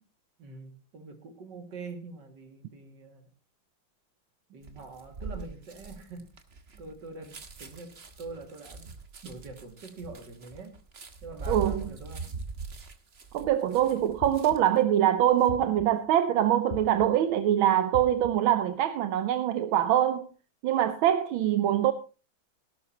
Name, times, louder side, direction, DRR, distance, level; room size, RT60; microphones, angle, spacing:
voice 1, 0.4-3.2 4.5-6.3 6.8-8.9 9.2-10.8 11.2-12.3, right 3 dB, 60° right, 2.9 m, -44 dB
sound 1, 4.6-14.8 15.2-15.5, right 3 dB, 35° right, 1.3 m, -42 dB
voice 2, 11.5-11.9 13.3-20.3 20.6-21.9, right 11 dB, 85° right, 1.6 m, -24 dB
sound 2, 14.2-14.9 15.5-16.1 16.7-17.3 17.9-18.6, left 6 dB, 65° left, 0.5 m, -41 dB
17.0 x 12.5 x 2.9 m
omnidirectional pair, 2.2 m